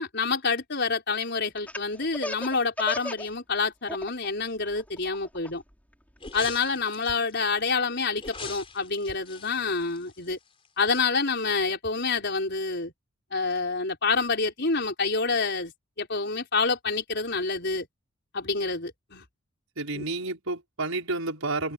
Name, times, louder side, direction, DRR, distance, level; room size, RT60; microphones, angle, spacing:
voice 1, 0.0-5.6 6.3-10.4 10.8-12.9 13.3-15.7 16.0-17.9 18.3-19.2 20.0-20.1, left 4 dB, 50° left, 5.3 m, -27 dB
Laughter, 1.6-3.3 3.6-4.3 4.7-6.4, left 1 dB, 5° left, 4.8 m, -35 dB
sound 1, 6.2-7.3 8.2-10.7 11.0-11.1, left 4 dB, 25° left, 4.4 m, -42 dB
voice 2, 19.8-21.7, right 2 dB, 75° right, 5.7 m, -30 dB
head